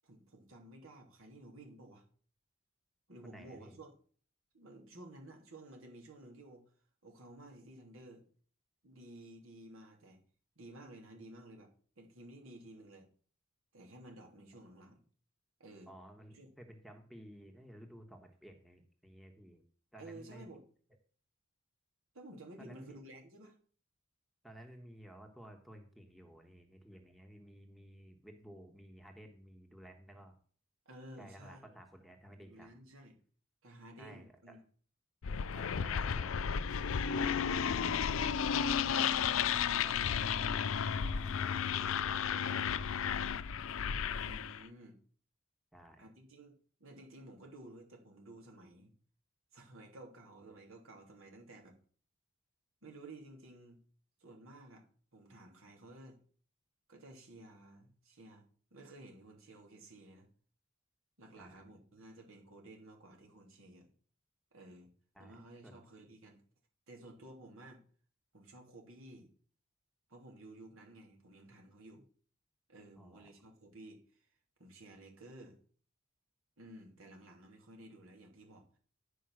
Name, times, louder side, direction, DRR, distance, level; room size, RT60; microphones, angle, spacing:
voice 1, 0.0-2.0 3.1-3.9 4.5-6.6 7.0-8.2 8.8-10.2 10.6-11.7 12.0-13.1 13.7-15.0 15.6-15.9 16.3-16.5 19.9-20.6 22.1-23.6 30.8-31.6 32.4-33.2 33.6-34.6 35.8-36.7 44.2-45.0 46.0-46.5 46.8-48.9 49.5-51.8 52.8-53.8 54.2-54.8 55.1-56.2 56.9-60.3 61.2-63.9 64.5-64.9 65.2-66.4 66.9-67.8 68.3-69.3 70.1-72.1 72.7-74.3 74.6-75.6 76.6-78.8, right 1 dB, 80° right, 2.9 m, -54 dB
voice 2, 3.2-3.8 15.9-19.6 19.9-20.5 22.6-23.0 24.4-30.3 31.2-32.7 34.0-34.6 35.5-36.5 37.7-39.3 39.8-40.2 40.5-43.3 45.7-46.0 61.4-61.6 65.1-65.8 73.0-73.3, equal, ahead, 1.3 m, -55 dB
sound 1, 35.2-44.6, left 7 dB, 75° left, 0.5 m, -33 dB
10.0 x 5.5 x 6.3 m
head